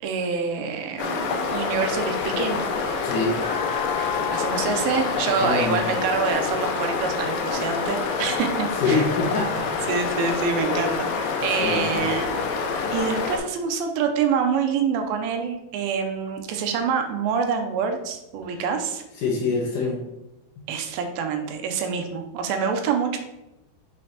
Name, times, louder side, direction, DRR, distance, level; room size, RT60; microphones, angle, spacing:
voice 1, 0.0-2.7 4.0-9.0 9.9-12.5 12.9-19.0 20.7-23.2, right 6 dB, 85° right, 5 dB, 2.4 m, -26 dB
sound 1, 1.0-13.4, left 5 dB, 90° left, 2.6 m, -27 dB
voice 2, 3.0-3.4 5.4-5.8 8.8-9.9 11.6-12.1 19.2-20.0 20.6-20.7, left 3 dB, 70° left, -2 dB, 2.1 m, -25 dB
sound 2, 3.4-8.0, left 10 dB, 25° right, 1.3 m, -35 dB
6.4 x 5.1 x 2.8 m, 0.94 s
omnidirectional pair, 4.3 m